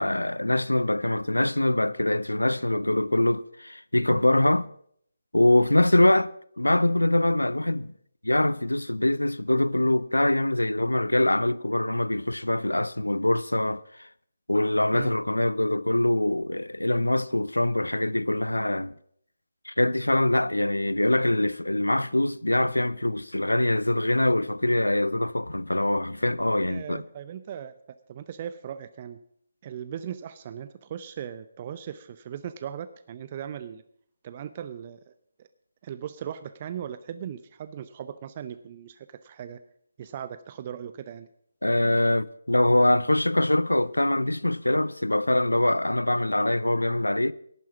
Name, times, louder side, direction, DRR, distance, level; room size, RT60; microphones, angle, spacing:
voice 1, 0.0-4.7 5.3-6.3 6.6-7.9 8.2-14.1 14.5-18.9 19.7-27.0 41.6-47.3, left 1 dB, 85° left, 0.5 m, -23 dB
voice 2, 2.5-2.9 14.9-15.1 26.7-27.7 28.1-29.2 29.6-33.8 34.2-35.1 35.4-35.5 35.8-39.6 40.0-41.3, right 9 dB, 30° right, 0.5 m, -38 dB
11.5 x 9.2 x 7.2 m
figure-of-eight pair, 150°, 0 cm